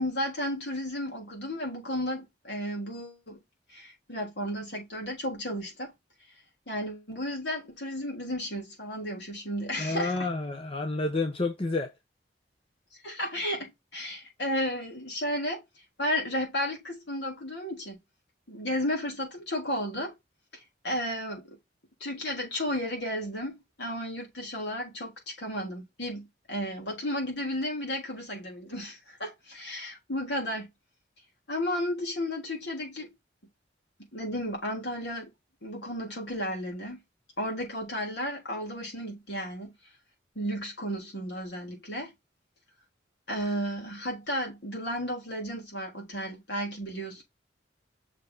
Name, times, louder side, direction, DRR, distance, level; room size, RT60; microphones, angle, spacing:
voice 1, 0.0-3.4 3.7-5.9 6.7-10.3 13.0-15.6 16.0-18.0 18.5-20.2 20.8-21.6 22.0-30.7 31.5-33.1 34.1-35.3 35.6-37.0 37.4-39.7 40.4-42.1 43.3-47.2, equal, 65° left, 3.7 m, -33 dB
voice 2, 9.8-11.9, left 3 dB, 30° left, 0.9 m, -29 dB
6.4 x 4.4 x 4.1 m
head